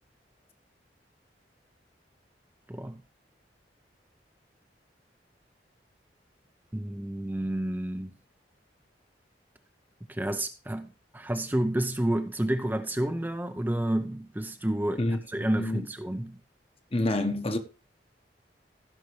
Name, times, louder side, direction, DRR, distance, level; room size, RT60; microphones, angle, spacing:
voice 1, 2.7-3.0 6.7-8.1 10.1-10.9 11.1-15.0 15.3-16.4, right 1 dB, 10° right, 0.6 m, -30 dB
voice 2, 15.5-15.9 16.9-17.6, left 1 dB, 35° left, 1.1 m, -27 dB
16.0 x 5.9 x 3.1 m
head